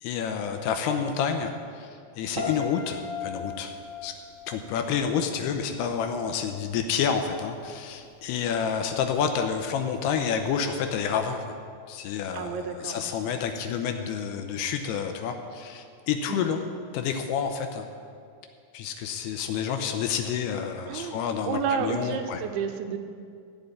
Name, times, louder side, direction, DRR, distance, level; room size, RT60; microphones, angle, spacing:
voice 1, 0.0-1.9 2.2-3.7 4.0-4.1 4.5-11.6 11.9-16.6 16.9-17.9 18.7-22.4, left 7 dB, 80° left, 5 dB, 2.5 m, -29 dB
Piano, 2.4-5.5 5.7-6.2, left 3 dB, 65° right, 3.4 m, -36 dB
voice 2, 12.3-13.0 16.3-16.6 20.9-23.0, right 7 dB, 90° right, 6 dB, 3.2 m, -31 dB
15.0 x 5.2 x 9.7 m, 2.3 s
omnidirectional pair, 5.2 m